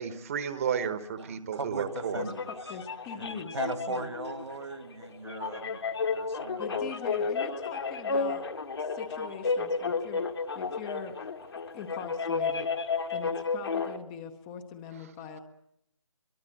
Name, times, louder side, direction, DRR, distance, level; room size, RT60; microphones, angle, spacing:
voice 1, 0.0-2.2, right 7 dB, 25° right, 11 dB, 1.3 m, -32 dB
voice 2, 1.2-2.5 3.1-6.9, right 3 dB, 60° right, 10 dB, 2.2 m, -39 dB
sound 1, 1.9-14.0, left 4 dB, 50° left, 1.7 m, -32 dB
voice 3, 2.1-4.1 6.6-8.5 8.8-10.2 10.5-11.2 11.7-15.4, left 7 dB, 10° left, 7 dB, 0.8 m, -43 dB
23.5 x 23.0 x 7.8 m, 0.77 s
figure-of-eight pair, 155°, 16 cm